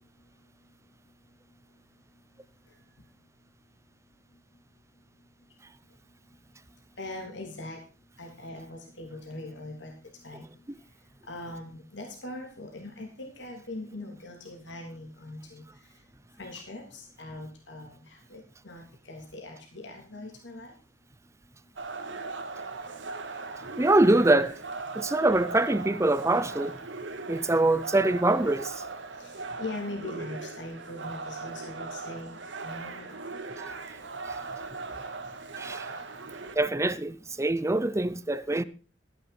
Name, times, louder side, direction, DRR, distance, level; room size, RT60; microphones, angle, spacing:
voice 1, 7.0-7.8 8.2-9.9 10.2-10.4 11.3-15.6 16.4-20.7 29.2-29.3 29.6-33.4, left 2 dB, 75° left, 3.2 m, -41 dB
sound 1, 21.8-36.6, right 3 dB, 85° right, 1.9 m, -39 dB
voice 2, 23.8-24.6 24.9-26.8 27.3-28.8 33.6-33.7 34.3-34.4 35.6-35.9 36.5-38.6, right 2 dB, 15° right, 0.6 m, -24 dB
13.5 x 10.5 x 4.2 m
head